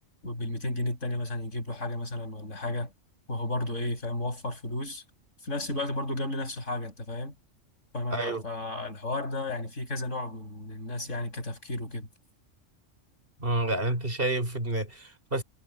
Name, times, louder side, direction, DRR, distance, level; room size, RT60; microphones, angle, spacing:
voice 1, 0.2-2.9 3.3-5.0 5.4-7.3 7.9-12.1, left 2 dB, 75° left, 7.1 m, -33 dB
voice 2, 8.1-8.4 13.4-15.4, right 1 dB, 45° right, 3.7 m, -29 dB
omnidirectional pair, 1.3 m